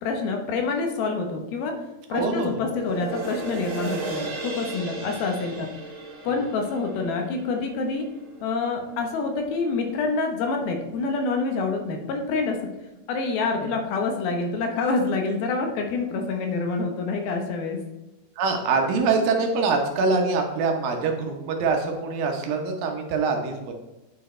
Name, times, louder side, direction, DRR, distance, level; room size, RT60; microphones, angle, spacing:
voice 1, 0.0-1.8 2.1-5.7 6.2-8.0 8.4-12.6 13.1-17.8, left 4 dB, 80° left, 3 dB, 2.8 m, -27 dB
voice 2, 2.1-2.6 6.3-6.4 13.6-13.7 18.4-23.7, right 4 dB, 75° right, 3 dB, 2.5 m, -24 dB
sound 1, 2.6-9.2 9.6-9.7, right 3 dB, 35° right, 3.0 m, -36 dB
8.8 x 4.6 x 4.3 m, 1.0 s
omnidirectional pair, 4.3 m